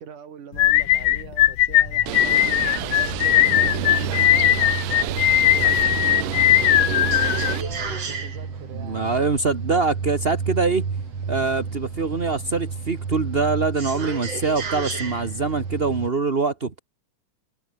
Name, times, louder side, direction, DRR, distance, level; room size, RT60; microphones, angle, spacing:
voice 1, 0.0-2.5 2.8-4.6 4.9-6.7 7.2-9.1, right 7 dB, 70° right, 4.0 m, -41 dB
sound 1, 0.6-7.9, left 14 dB, 80° left, 1.3 m, -19 dB
sound 2, 1.8-16.1, right 5 dB, 50° right, 4.6 m, -31 dB
Bird, 2.1-7.6, right 15 dB, 90° right, 2.7 m, -30 dB
voice 2, 8.7-10.9 11.3-16.8, right 4 dB, 35° right, 1.0 m, -24 dB
omnidirectional pair, 3.7 m